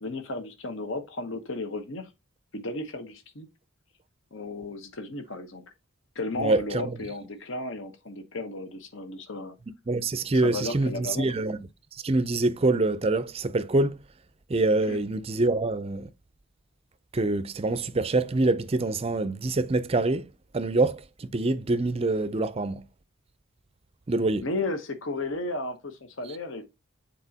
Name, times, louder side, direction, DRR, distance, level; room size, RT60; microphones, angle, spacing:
voice 1, 0.0-2.1 2.5-3.5 4.3-5.6 6.1-9.5 10.3-11.3 14.9-15.0 24.4-26.7, left 2 dB, 65° left, 1.0 m, -34 dB
voice 2, 6.4-6.9 9.9-11.6 12.0-14.0 14.5-16.1 17.1-20.3 20.5-22.8 24.1-24.5, right 2 dB, 30° right, 0.5 m, -25 dB
8.1 x 4.2 x 2.8 m
head